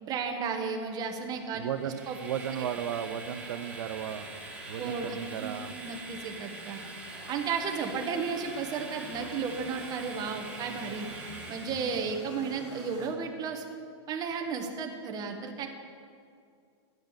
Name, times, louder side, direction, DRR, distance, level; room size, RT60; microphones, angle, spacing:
voice 1, 0.0-1.7 2.1-2.2 4.8-5.5 5.8-6.8 7.3-11.1 11.5-13.6 14.1-15.7, right 5 dB, 25° right, 4 dB, 1.2 m, -33 dB
sound 1, 0.8-13.1, left 2 dB, 80° left, 2.3 m, -50 dB
Train, 1.6-12.1, right 3 dB, 10° right, 1.7 m, -44 dB
voice 2, 1.6-4.3 4.7-5.7, right 9 dB, 80° right, 9 dB, 0.6 m, -35 dB
10.5 x 5.2 x 8.0 m, 2.3 s
hypercardioid pair, 140°, 15 cm